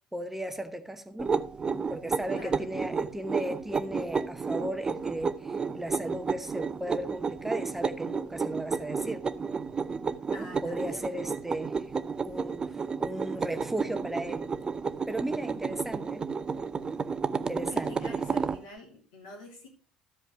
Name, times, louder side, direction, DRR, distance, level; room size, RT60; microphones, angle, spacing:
voice 1, 0.1-1.3 1.9-9.2 10.3-11.9 12.2-14.5 15.1-16.3 17.3-18.0, right 1 dB, 5° right, 0.9 m, -36 dB
sound 1, 1.2-18.6, right 5 dB, 25° right, 0.5 m, -32 dB
voice 2, 2.3-2.6 10.3-11.1 15.7-15.9 17.7-19.7, left 2 dB, 65° left, 3.3 m, -46 dB
13.0 x 5.1 x 5.0 m
figure-of-eight pair, 60°, 3 cm